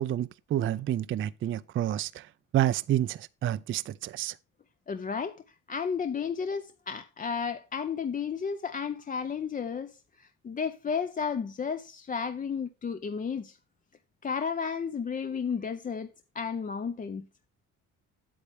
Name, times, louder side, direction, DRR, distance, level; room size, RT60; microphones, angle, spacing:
voice 1, 0.0-2.3 2.5-4.3, right 12 dB, 40° right, 0.4 m, -29 dB
voice 2, 4.9-13.6 14.2-17.3, left 6 dB, 25° left, 0.5 m, -33 dB
8.5 x 7.9 x 3.4 m
cardioid pair, 115°, 32 cm